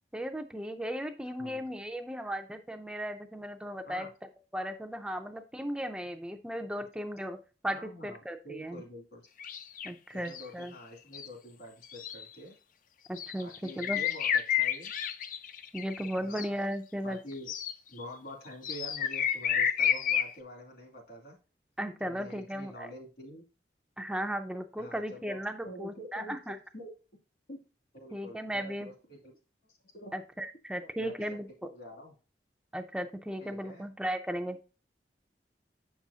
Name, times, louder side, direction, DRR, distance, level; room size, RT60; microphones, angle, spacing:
voice 1, 0.1-4.1 4.5-7.4 7.6-8.8 9.8-10.7 13.1-14.0 15.7-17.2 21.8-22.9 24.0-26.6 28.1-28.9 30.1-31.5 32.7-34.6, equal, 5° right, 5 dB, 0.4 m, -36 dB
voice 2, 7.7-8.2 8.4-9.2 10.1-12.6 13.4-14.9 16.2-16.5 17.0-17.5 17.9-21.4 22.0-23.4 24.8-25.4 25.6-26.3 26.7-26.9 27.5-27.6 27.9-29.3 29.6-30.1 30.8-32.1 33.4-33.9, equal, 70° left, 1 dB, 2.4 m, -47 dB
sound 1, 9.4-9.9 10.3-10.6 11.1-11.3 11.8-12.2 13.2-16.5 17.5-17.7 18.6-20.3, left 9 dB, 50° left, 0.5 m, -30 dB
7.3 x 6.1 x 2.7 m, 0.33 s
head